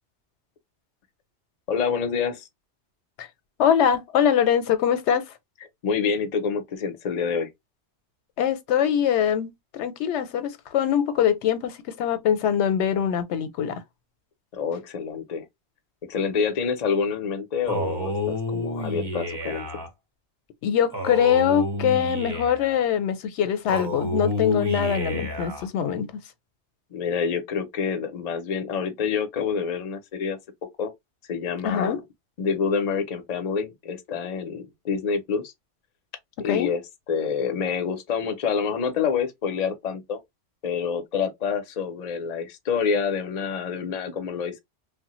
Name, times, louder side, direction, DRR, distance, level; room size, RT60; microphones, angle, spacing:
voice 1, 1.7-2.5 5.8-7.5 14.5-15.4 16.1-19.7 26.9-30.4 30.8-30.9 31.3-32.0 32.4-35.5 36.4-40.2 40.6-44.6, left 6 dB, 45° left, 0.6 m, -27 dB
voice 2, 3.6-5.3 8.4-13.8 20.6-26.2 31.6-32.0 36.4-36.7, left 8 dB, 75° left, 0.9 m, -23 dB
Male speech man speaking, 17.7-19.9 20.9-22.7 23.7-25.7, left 1 dB, 25° right, 0.8 m, -30 dB
3.1 x 2.1 x 2.9 m
omnidirectional pair, 1.2 m